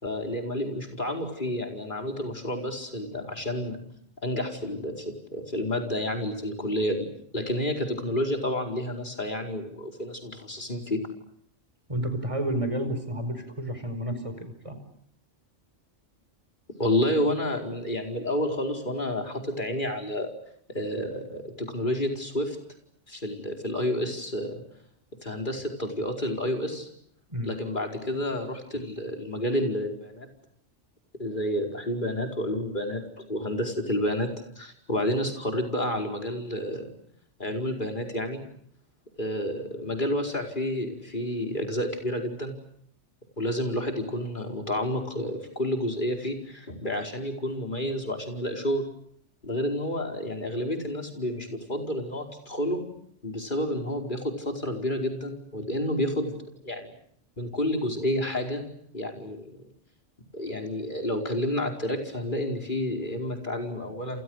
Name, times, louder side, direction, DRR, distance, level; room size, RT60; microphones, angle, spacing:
voice 1, 0.0-3.8 4.2-7.1 7.3-11.0 16.8-20.3 20.7-22.6 23.1-24.6 25.2-26.9 27.4-30.3 31.2-34.3 34.6-36.8 37.4-38.4 39.2-42.5 43.4-48.9 49.4-52.8 53.2-56.4 56.6-56.9 57.4-58.6 58.9-59.6 60.3-64.2, left 1 dB, 40° left, 4 dB, 5.1 m, -30 dB
voice 2, 11.9-14.8 27.3-27.5, right 1 dB, 25° right, 9 dB, 5.1 m, -31 dB
29.5 x 29.0 x 6.4 m, 0.65 s
omnidirectional pair, 1.2 m